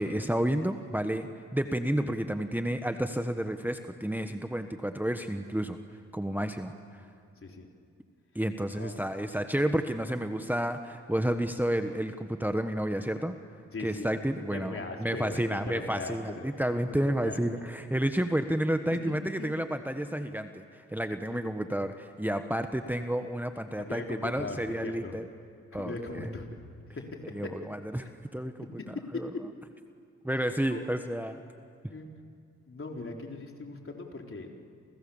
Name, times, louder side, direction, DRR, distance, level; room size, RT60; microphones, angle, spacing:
voice 1, 0.0-5.8 6.1-7.1 8.3-13.4 13.8-25.2 25.7-26.3 27.3-28.5 29.1-29.3 30.2-31.4, right 1 dB, 5° right, 7 dB, 1.4 m, -31 dB
voice 2, 8.6-9.0 13.7-14.2 14.5-16.4 17.0-17.4 19.4-19.5 21.3-21.4 23.8-25.2 25.7-26.6 26.9-27.5 28.0-28.1 28.6-29.3 30.7-30.9 31.9-32.1 32.7-34.7, left 3 dB, 45° left, 1 dB, 4.1 m, -39 dB
29.0 x 28.5 x 7.2 m, 2.3 s
cardioid pair, 55°, 30 cm